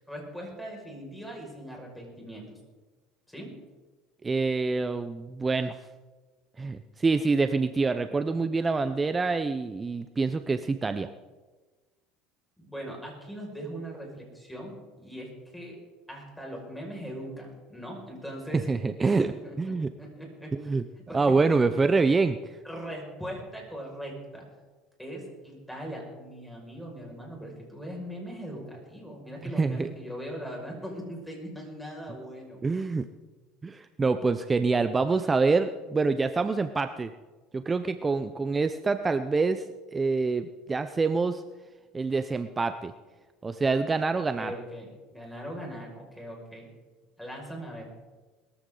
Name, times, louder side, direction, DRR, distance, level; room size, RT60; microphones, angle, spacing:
voice 1, 0.0-2.6 3.3-3.5 12.6-15.8 16.1-18.7 19.0-20.6 21.1-21.6 22.6-24.4 25.0-32.6 44.4-46.7 47.2-47.8, equal, 5° left, -1 dB, 5.8 m, -40 dB
voice 2, 4.2-5.8 6.6-11.1 18.5-19.9 20.6-20.8 21.1-22.4 29.4-29.9 32.6-33.1 33.6-37.1 37.5-39.6 39.9-41.4 41.9-42.9 43.4-44.5, right 4 dB, 20° right, 10 dB, 0.7 m, -26 dB
21.0 x 14.0 x 3.9 m, 1.3 s
supercardioid pair, 110°, 0 cm